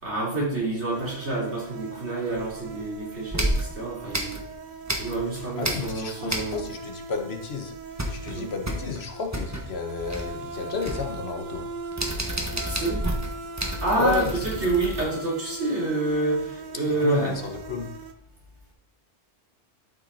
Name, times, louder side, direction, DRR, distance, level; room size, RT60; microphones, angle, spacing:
voice 1, 0.0-4.4 5.0-6.6 8.3-8.5 12.5-13.1 13.6-17.3, right 2 dB, 90° right, 3.8 m, -28 dB
sound 1, 0.9-18.1, right 3 dB, 50° right, 0.7 m, -40 dB
sound 2, 2.4-2.9 3.3-5.3 5.6-6.9 7.2-7.3 7.6-15.0, right 1 dB, 15° right, 1.2 m, -31 dB
voice 2, 5.4-11.7 13.9-14.6 17.0-17.9, left 5 dB, 70° left, 1.3 m, -32 dB
12.0 x 5.8 x 4.1 m
omnidirectional pair, 1.1 m